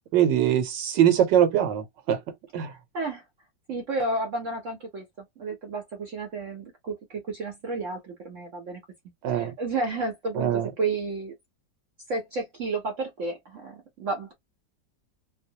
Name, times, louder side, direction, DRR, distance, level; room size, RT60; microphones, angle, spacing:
voice 1, 0.1-2.2 2.5-2.7 9.2-9.5 10.3-10.7, right 10 dB, 75° right, 1.4 m, -22 dB
voice 2, 2.7-3.2 3.7-8.8 9.3-11.3 12.1-14.3, right 3 dB, 60° right, 0.9 m, -32 dB
3.0 x 2.0 x 2.7 m
omnidirectional pair, 1.9 m